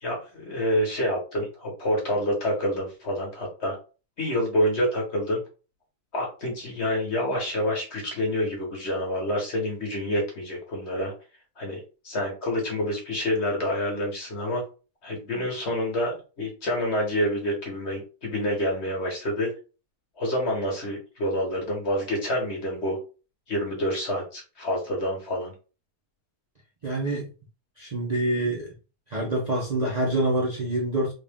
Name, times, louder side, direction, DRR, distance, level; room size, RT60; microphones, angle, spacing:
voice 1, 0.0-3.8 4.2-5.4 6.1-11.1 11.6-14.6 15.0-19.5 20.2-23.0 23.5-25.5, equal, 45° left, -1 dB, 1.4 m, -27 dB
voice 2, 26.8-27.3 27.8-28.7 29.1-31.1, right 1 dB, 40° right, -4 dB, 0.6 m, -26 dB
3.7 x 2.5 x 3.5 m, 0.34 s
omnidirectional pair, 1.7 m